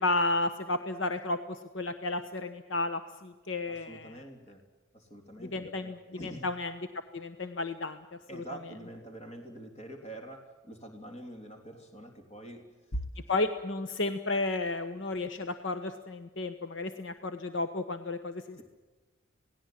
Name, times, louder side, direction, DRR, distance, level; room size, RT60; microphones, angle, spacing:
voice 1, 0.0-1.4 1.7-4.1 5.4-6.0 6.2-6.7 7.1-8.0 8.3-8.4 13.3-18.6, left 2 dB, 65° left, 9 dB, 1.1 m, -32 dB
voice 2, 3.7-4.6 4.9-6.5 8.3-12.9, right 1 dB, 30° left, 3 dB, 3.3 m, -46 dB
27.0 x 18.5 x 7.5 m, 1.2 s
head